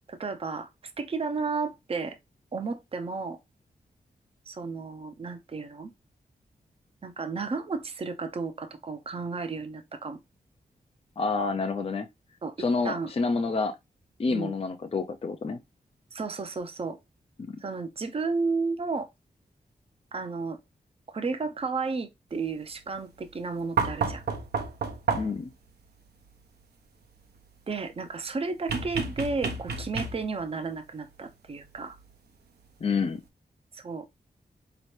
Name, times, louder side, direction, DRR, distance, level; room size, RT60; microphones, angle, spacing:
voice 1, 0.1-0.7 1.0-2.2 2.5-3.4 4.5-5.9 7.0-10.2 12.4-12.5 12.8-13.1 14.3-14.5 16.1-17.0 17.6-19.1 20.1-20.6 21.1-24.2 27.7-32.0 33.7-34.1, right 4 dB, 35° right, 0.6 m, -33 dB
voice 2, 11.2-12.1 12.6-13.7 14.2-15.6 25.1-25.5 32.8-33.2, left 4 dB, 40° left, 0.5 m, -28 dB
sound 1, 23.8-25.5 28.7-30.4 32.0-32.1, right 5 dB, 80° right, 0.8 m, -30 dB
4.0 x 2.9 x 3.1 m
cardioid pair, 60°, 16 cm